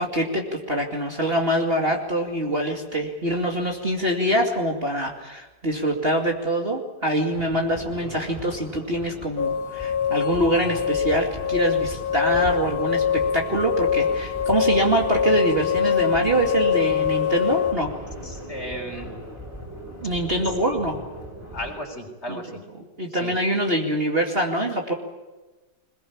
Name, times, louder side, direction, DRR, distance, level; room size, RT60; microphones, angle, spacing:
voice 1, 0.0-17.9 20.0-21.0 22.3-22.4 23.0-24.9, right 1 dB, 30° right, 1 dB, 2.5 m, -24 dB
sound 1, 7.3-21.7, equal, 15° right, 5.5 m, -38 dB
sound 2, 9.4-17.7, left 7 dB, 50° left, 2.1 m, -24 dB
voice 2, 18.2-19.1 20.7-20.8 21.5-22.6 23.1-23.4, equal, 30° left, 4 dB, 4.1 m, -35 dB
22.5 x 21.0 x 8.8 m, 1.2 s
omnidirectional pair, 2.2 m